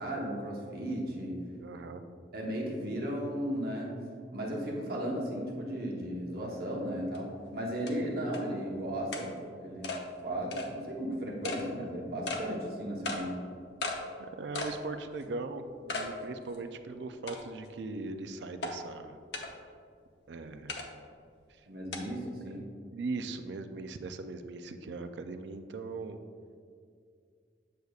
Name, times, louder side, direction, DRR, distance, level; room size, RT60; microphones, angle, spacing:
voice 1, 0.0-1.4 2.3-3.9 4.3-9.9 10.2-13.4 21.7-22.7, equal, 55° right, -2 dB, 1.1 m, -35 dB
voice 2, 1.6-2.0 14.2-19.2 20.3-20.9 22.9-26.2, right 3 dB, 75° right, 8 dB, 0.4 m, -39 dB
sound 1, 7.1-7.2 7.9-8.0 8.3-8.4 9.1-9.3 9.8-10.0 10.5-10.7 11.4-11.6 12.3-12.4 13.0-13.2 13.8-14.0 14.5-14.8 15.2-15.3 15.9-16.1 16.5-16.6 17.3-17.7 18.6-18.7 19.3-19.5 20.7-20.9 21.9-22.0, left 3 dB, 70° left, 0.7 m, -35 dB
7.7 x 6.7 x 2.4 m, 2.2 s
head